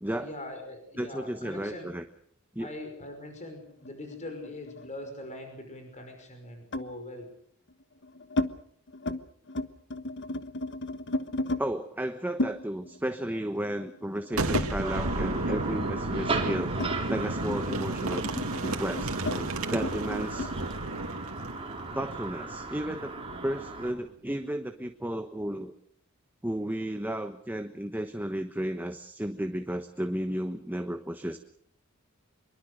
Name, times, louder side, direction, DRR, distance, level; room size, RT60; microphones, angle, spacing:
voice 1, 0.2-1.9 2.6-7.3, left 1 dB, 35° left, 5 dB, 5.6 m, -42 dB
voice 2, 1.0-2.0 2.5-2.7 11.6-16.7 17.1-18.3 18.6-20.5 21.9-23.1 23.4-25.7 26.4-31.4, right 1 dB, 10° right, 7 dB, 1.1 m, -33 dB
sound 1, 3.9-5.4 6.7-7.0 7.7-8.5 8.9-9.2 9.5-11.6 12.4-15.3 15.6-20.6, left 1 dB, 60° left, 1.2 m, -35 dB
Boom, 14.3-23.9, right 2 dB, 75° right, 2.6 m, -33 dB
sound 2, 14.8-23.9, right 3 dB, 25° right, 3.6 m, -37 dB
24.5 x 23.0 x 6.5 m, 0.62 s
head